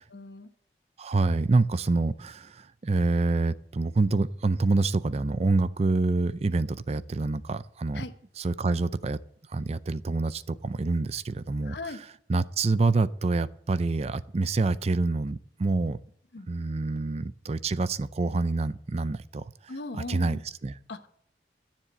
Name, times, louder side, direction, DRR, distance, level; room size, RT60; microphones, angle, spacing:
voice 1, 0.1-0.5 7.9-8.1 11.6-12.0 16.3-16.5 19.7-20.4 20.9-21.1, left 2 dB, 70° left, 1.1 m, -38 dB
voice 2, 1.0-8.0 8.4-9.2 9.5-16.0 16.5-19.4 20.1-20.7, right 3 dB, 35° right, 0.4 m, -27 dB
13.0 x 7.4 x 7.9 m
head